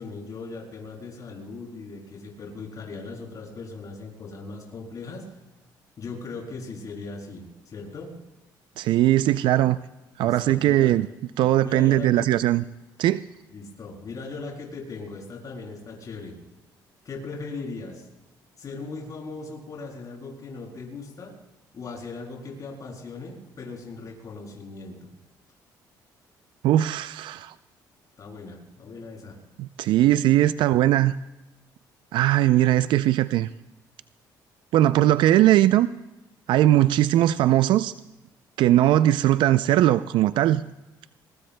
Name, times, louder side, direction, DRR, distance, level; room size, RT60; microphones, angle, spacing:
voice 1, 0.0-5.2 6.0-8.1 10.2-10.9 11.6-12.3 13.5-16.4 17.0-18.1 18.6-21.3 21.7-25.1 28.2-29.4, left 3 dB, 45° left, 6.8 m, -38 dB
voice 2, 8.8-9.8 10.2-11.1 11.4-12.6 13.0-13.2 26.6-27.5 29.6-31.1 32.1-33.5 34.7-35.9 36.5-37.9 38.6-40.6, right 13 dB, 75° right, 0.4 m, -19 dB
24.5 x 23.0 x 2.2 m
cardioid pair, 95°, 8 cm